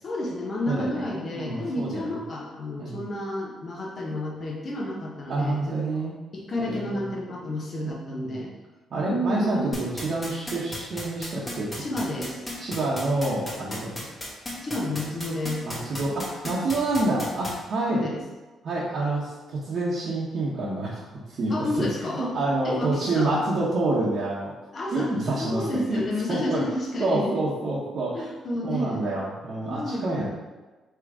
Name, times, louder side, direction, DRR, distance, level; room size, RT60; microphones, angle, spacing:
voice 1, 0.0-5.8 6.3-8.5 9.0-9.8 11.8-12.4 14.6-15.7 17.9-18.2 21.5-22.3 22.6-23.4 24.7-25.1 25.4-27.3 28.1-29.0 29.6-30.3, left 1 dB, 40° left, -2 dB, 1.0 m, -30 dB
voice 2, 0.7-1.0 1.3-2.2 2.8-3.0 5.3-6.1 6.6-7.1 8.2-8.4 8.9-11.7 12.6-13.9 15.6-18.0 18.6-21.9 22.2-24.5 24.9-26.0 26.3-26.6 27.0-28.3 28.6-30.3, right 2 dB, 55° right, -8 dB, 0.9 m, -27 dB
sound 1, 9.7-17.5, left 1 dB, 20° left, 1.4 m, -34 dB
3.6 x 3.0 x 4.7 m, 1.2 s
cardioid pair, 90°, 0 cm